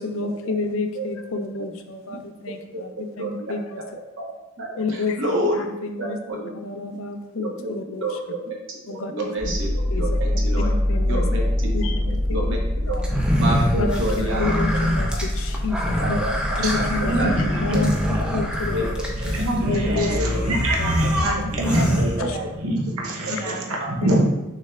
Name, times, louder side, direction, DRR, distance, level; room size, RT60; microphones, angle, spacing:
voice 1, 0.0-3.8 4.8-6.2 6.5-8.2 8.9-9.1 9.9-10.2 10.6-11.3 11.7-12.5 12.9-13.1 13.8-16.2 16.6-19.0 19.5-20.5 20.8-20.9 21.2-22.4 23.3-23.4 24.0-24.2, left 3 dB, 70° left, 6 dB, 0.5 m, -29 dB
voice 2, 3.2-3.5 4.2-4.3 4.6-5.6 6.0-6.6 7.4-7.7 8.0-9.7 10.0-10.7 11.1-11.7 12.3-12.6 12.8-13.0 13.4-14.6 16.0-16.3 16.7-16.8 17.2-17.4 17.7-17.8 18.7-18.8 19.2-19.3 20.1-20.4 22.0-22.5 23.8-24.2, right 1 dB, 60° right, -1 dB, 0.9 m, -28 dB
sound 1, 9.4-22.0, left 1 dB, 20° left, 0.9 m, -26 dB
sound 2, 13.0-22.7, equal, 5° right, 0.4 m, -25 dB
voice 3, 17.0-17.6 18.1-18.3 19.3-24.2, right 1 dB, 90° right, -1 dB, 0.8 m, -25 dB
6.2 x 3.3 x 2.3 m, 0.99 s
head